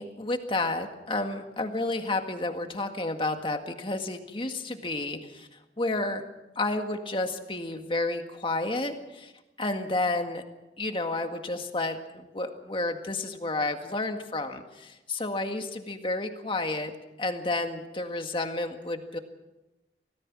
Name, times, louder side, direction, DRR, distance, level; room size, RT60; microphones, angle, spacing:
voice 1, 0.0-6.2 6.6-9.3 9.6-10.4 10.8-16.9 17.2-19.2, left 2 dB, 30° left, 5 dB, 1.8 m, -31 dB
25.5 x 18.0 x 6.2 m, 1.0 s
head